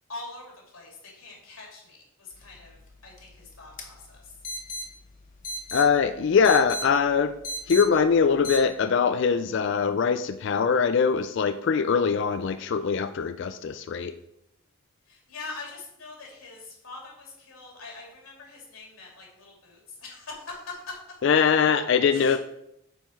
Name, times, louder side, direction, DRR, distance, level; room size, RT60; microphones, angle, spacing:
voice 1, 0.1-4.4 15.1-21.0 22.1-22.4, left 3 dB, 80° left, -2 dB, 2.8 m, -43 dB
sound 1, 2.3-8.6, equal, 35° left, 1.0 m, -39 dB
voice 2, 5.7-7.3 7.7-14.1 21.2-22.4, left 6 dB, 55° left, 11 dB, 0.3 m, -22 dB
7.0 x 5.7 x 4.5 m, 0.81 s
head